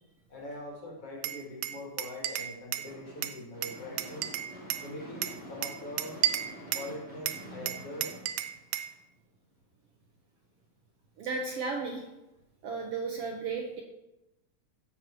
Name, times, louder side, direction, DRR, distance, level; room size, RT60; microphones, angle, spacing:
voice 1, 0.3-4.3 4.8-6.2 6.7-8.1, left 1 dB, 50° left, -1 dB, 3.0 m, -42 dB
Glass, 1.2-2.9 3.2-4.9 5.2-6.9 7.3-8.9, right 12 dB, 85° right, 2.1 m, -33 dB
Gunshot gunfire / Fireworks, 2.8-9.1, equal, 5° right, 2.9 m, -47 dB
voice 2, 11.2-12.1 12.6-13.8, right 4 dB, 65° right, 1 dB, 1.7 m, -34 dB
15.0 x 5.9 x 4.5 m, 0.96 s
omnidirectional pair, 3.5 m